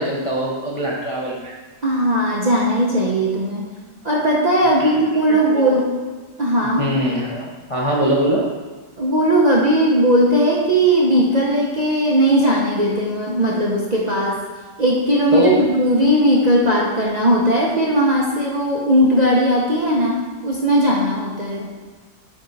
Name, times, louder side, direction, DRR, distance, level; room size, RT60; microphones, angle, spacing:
voice 1, 0.0-1.5 4.8-4.9 5.3-5.8 6.8-8.5 15.3-15.6, right 1 dB, 35° left, -4 dB, 0.5 m, -22 dB
voice 2, 1.8-3.7 4.0-5.9 6.4-6.9 9.0-14.4 14.8-21.7, equal, 40° right, -5 dB, 0.6 m, -18 dB
8.6 x 3.3 x 4.0 m, 1.4 s
omnidirectional pair, 1.7 m